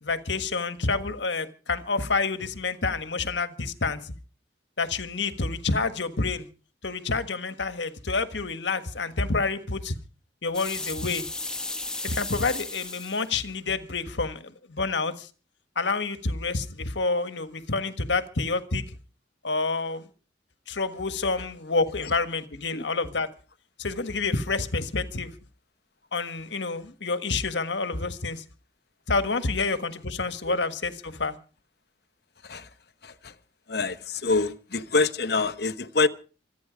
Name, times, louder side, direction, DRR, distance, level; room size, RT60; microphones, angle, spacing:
voice 1, 0.0-4.1 4.8-6.5 6.8-10.0 10.4-11.3 12.0-15.3 15.7-18.8 19.4-20.1 20.7-23.3 23.8-25.3 26.1-28.4 29.1-31.3, left 3 dB, 75° left, 1.6 m, -28 dB
sound 1, 10.5-13.3, left 2 dB, 5° left, 1.3 m, -34 dB
voice 2, 33.7-36.1, left 3 dB, 60° left, 1.1 m, -26 dB
26.0 x 9.5 x 5.1 m
head